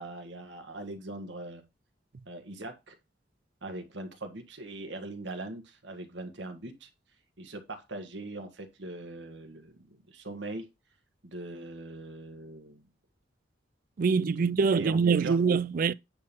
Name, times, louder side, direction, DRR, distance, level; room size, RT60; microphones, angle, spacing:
voice 1, 0.0-1.6 2.3-3.0 3.6-6.9 7.4-10.7 11.2-12.9 14.4-15.4, right 2 dB, 70° right, 1.7 m, -41 dB
voice 2, 14.0-15.9, right 5 dB, 50° right, 0.4 m, -24 dB
9.7 x 4.0 x 5.4 m
head